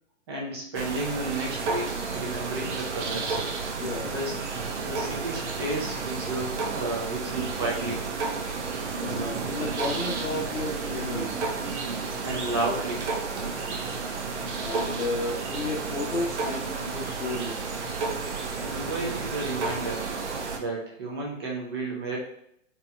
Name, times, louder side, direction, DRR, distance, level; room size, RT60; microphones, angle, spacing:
voice 1, 0.3-3.4 4.0-4.3 4.8-8.1 12.2-13.1 18.6-20.1 20.5-22.2, right 2 dB, 20° right, -2 dB, 0.5 m, -32 dB
sound 1, 0.7-20.6, right 4 dB, 60° right, 0.7 m, -31 dB
voice 2, 3.8-4.1 8.6-11.4 14.6-17.7, left 2 dB, 75° left, -5 dB, 1.0 m, -33 dB
4.1 x 2.9 x 2.2 m, 0.72 s
hypercardioid pair, 145°, 39 cm